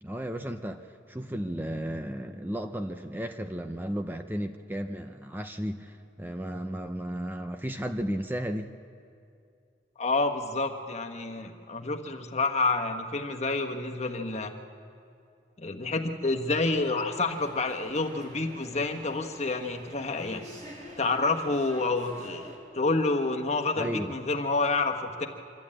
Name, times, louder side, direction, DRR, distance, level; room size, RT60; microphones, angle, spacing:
voice 1, 0.0-8.7 23.8-24.1, equal, 10° right, 6 dB, 0.6 m, -34 dB
voice 2, 10.0-14.5 15.6-20.4 21.0-22.5 22.7-25.3, left 3 dB, 40° left, 4 dB, 1.3 m, -28 dB
sound 1, 17.1-22.6, equal, 45° right, 4.1 m, -48 dB
26.0 x 13.0 x 8.8 m, 2.4 s
head